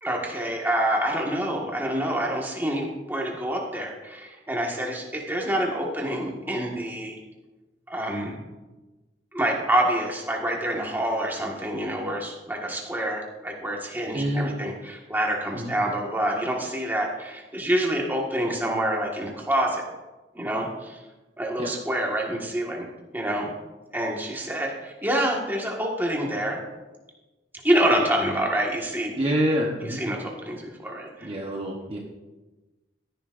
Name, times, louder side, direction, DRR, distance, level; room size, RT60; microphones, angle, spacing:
voice 1, 0.0-7.2 7.9-8.4 9.3-19.8 20.3-21.0 21.4-22.9 23.1-23.5 23.9-26.6 27.6-29.3 29.8-31.3, right 1 dB, 10° right, -1 dB, 1.6 m, -27 dB
voice 2, 14.1-14.5 15.5-15.7 21.6-21.7 29.2-30.0 31.2-32.0, equal, 30° right, -1 dB, 1.1 m, -26 dB
15.0 x 10.5 x 2.6 m, 1.1 s
head